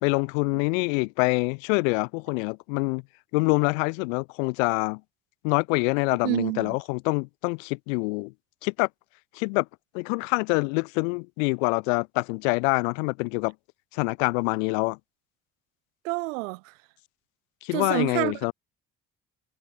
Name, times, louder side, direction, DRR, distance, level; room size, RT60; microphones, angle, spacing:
voice 1, 0.0-3.0 3.3-5.0 5.4-8.3 8.6-8.9 9.3-9.7 9.9-13.5 13.9-15.0 17.6-18.5, left 34 dB, 75° left, 2.2 m, -25 dB
voice 2, 6.2-6.8 16.0-16.7 17.7-18.5, right 24 dB, 80° right, 0.9 m, -28 dB
hypercardioid pair, 45°, 39 cm